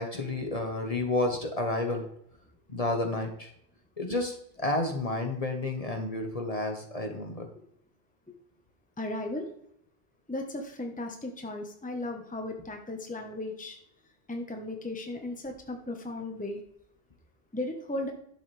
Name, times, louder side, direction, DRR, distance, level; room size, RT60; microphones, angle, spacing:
voice 1, 0.0-2.1 2.7-3.5 4.0-7.5, left 2 dB, 35° left, 3 dB, 1.3 m, -31 dB
voice 2, 9.0-9.4 10.3-13.8 14.3-16.6 17.5-18.1, left 2 dB, 10° left, 3 dB, 1.1 m, -36 dB
11.5 x 7.2 x 3.4 m, 0.72 s
omnidirectional pair, 1.1 m